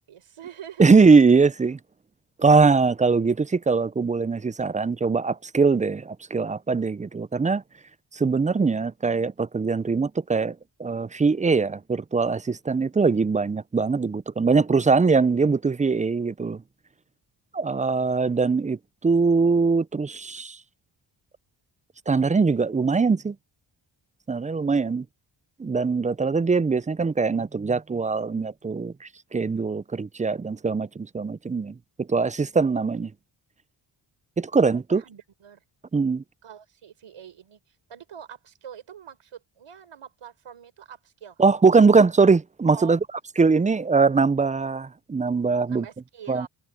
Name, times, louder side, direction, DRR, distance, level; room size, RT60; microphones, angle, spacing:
voice 1, 0.1-0.9 24.5-25.0 34.7-35.6 36.4-41.4 42.7-43.0 45.7-46.5, right 8 dB, 80° right, 4.5 m, -44 dB
voice 2, 0.8-1.8 2.4-7.6 8.1-16.6 17.5-20.6 22.1-23.4 24.3-25.0 25.6-31.7 32.1-33.1 34.4-35.0 35.9-36.2 41.4-43.0 43.4-45.8 46.3-46.5, right 4 dB, 15° right, 0.4 m, -21 dB
cardioid pair, 70°, 50 cm